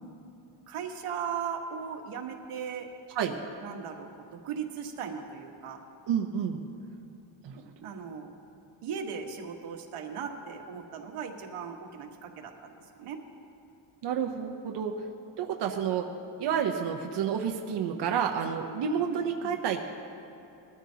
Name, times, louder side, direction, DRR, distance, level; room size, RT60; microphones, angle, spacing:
voice 1, 0.7-2.9 3.6-5.8 7.8-8.3 8.8-13.2 19.1-19.5, right 7 dB, 90° right, 3 dB, 1.5 m, -38 dB
voice 2, 6.1-6.6 7.4-7.6 14.0-14.9 15.4-16.1 16.4-19.9, right 8 dB, 55° right, 2 dB, 0.8 m, -30 dB
20.5 x 13.0 x 2.8 m, 2.8 s
cardioid pair, 170°, 50 cm